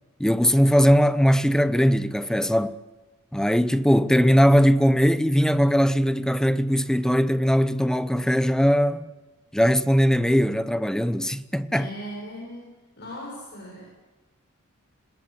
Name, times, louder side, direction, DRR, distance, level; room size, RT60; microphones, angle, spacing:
voice 1, 0.2-2.8 3.3-9.1 9.5-11.9, equal, 5° left, 0.8 m, -20 dB
voice 2, 11.7-13.8, equal, 50° left, 7.2 m, -38 dB
26.5 x 20.5 x 7.9 m
head